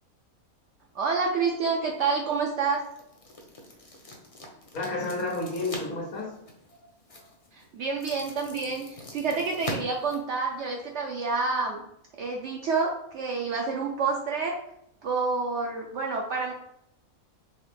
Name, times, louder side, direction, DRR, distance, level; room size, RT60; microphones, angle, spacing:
voice 1, 0.9-2.8 7.5-11.8 12.2-14.6 15.0-16.5, right 4 dB, 65° right, 0.8 m, -28 dB
sound 1, 1.9-10.9, left 1 dB, 35° left, 0.6 m, -44 dB
voice 2, 4.7-6.4 6.7-7.3, left 2 dB, 90° left, 1.5 m, -32 dB
3.9 x 3.0 x 3.3 m
omnidirectional pair, 1.5 m